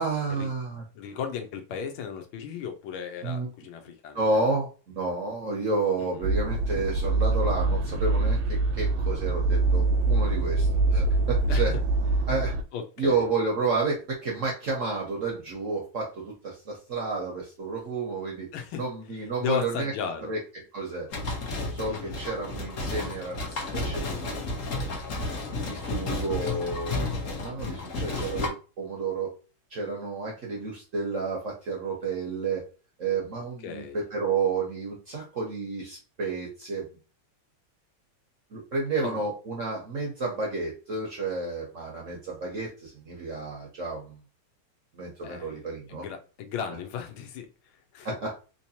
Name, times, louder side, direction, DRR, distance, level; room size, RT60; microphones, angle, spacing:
voice 1, 0.0-0.8 3.2-3.5 4.1-4.7 4.9-11.7 12.3-12.5 13.0-18.5 18.7-19.9 20.3-21.1 21.7-24.6 25.7-29.3 29.7-32.6 33.0-36.9 38.5-44.2 44.9-46.0 48.0-48.4, right 3 dB, 55° right, 0.9 m, -31 dB
voice 2, 0.9-4.5 6.0-6.2 11.5-11.8 12.7-13.3 18.5-18.8 19.1-20.3 21.9-22.2 33.6-34.0 39.0-39.3 45.2-47.5 47.9-48.1, left 7 dB, 80° left, 1.5 m, -36 dB
sound 1, 6.2-12.6, right 3 dB, 85° right, 1.4 m, -24 dB
sound 2, 21.1-28.5, left 2 dB, 55° left, 1.0 m, -32 dB
3.8 x 3.0 x 2.7 m
omnidirectional pair, 2.3 m